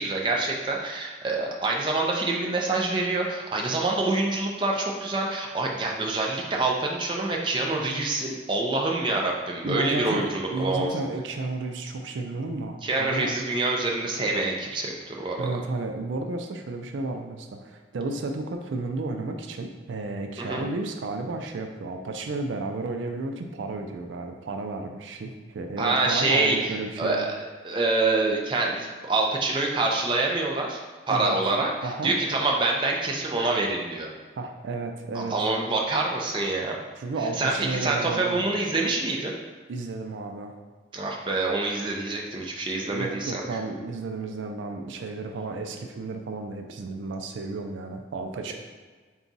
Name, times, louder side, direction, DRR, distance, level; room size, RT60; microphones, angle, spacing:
voice 1, 0.0-10.9 12.8-15.5 20.4-20.6 25.8-26.6 27.0-27.3 27.6-30.8 31.1-34.1 35.1-36.8 37.4-37.5 37.8-39.3 40.9-43.4 48.5-48.6, right 2 dB, 25° right, 0 dB, 0.4 m, -26 dB
voice 2, 9.6-13.3 15.4-27.3 31.1-31.4 31.8-32.2 34.4-35.4 37.0-38.5 39.7-40.5 42.8-48.5, right 3 dB, 85° right, 4 dB, 0.4 m, -32 dB
3.9 x 2.4 x 3.9 m, 1.4 s
head